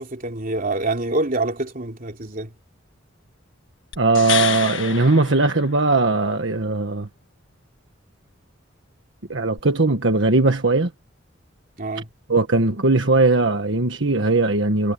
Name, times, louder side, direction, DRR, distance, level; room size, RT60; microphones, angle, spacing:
voice 1, 0.0-2.5 11.8-12.1, right 2 dB, 45° right, 3.2 m, -26 dB
sound 1, 3.9-6.2 9.6-9.7, left 9 dB, 75° left, 1.3 m, -28 dB
voice 2, 4.0-7.1 9.3-10.9 12.3-14.9, right 3 dB, 70° right, 1.5 m, -19 dB
head